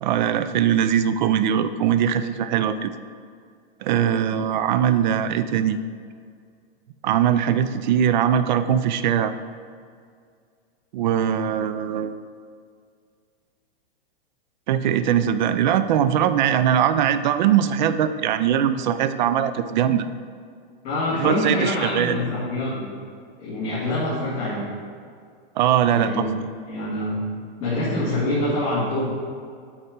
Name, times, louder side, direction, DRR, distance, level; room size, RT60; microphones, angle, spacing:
voice 1, 0.0-2.9 3.8-5.8 7.0-9.3 10.9-12.2 14.7-20.1 21.1-22.2 25.6-26.2, right 9 dB, 50° right, 12 dB, 0.5 m, -21 dB
voice 2, 20.8-22.9 23.4-24.7 25.9-26.3 26.6-27.3 27.6-29.2, left 1 dB, 20° left, -10 dB, 2.0 m, -25 dB
8.6 x 4.3 x 5.2 m, 2.2 s
supercardioid pair, 160°, 29 cm